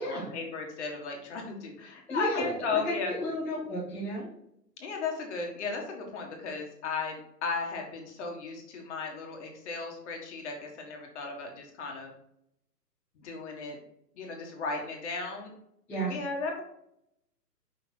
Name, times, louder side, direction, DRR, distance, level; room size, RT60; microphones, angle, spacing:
voice 1, 0.0-3.1 4.8-12.1 13.1-13.8 14.1-15.5 16.1-16.6, left 4 dB, 45° left, 2 dB, 1.6 m, -35 dB
voice 2, 2.1-4.3 15.9-16.1, equal, 5° left, -11 dB, 0.7 m, -33 dB
5.5 x 4.0 x 4.5 m, 0.76 s
hypercardioid pair, 150°, 49 cm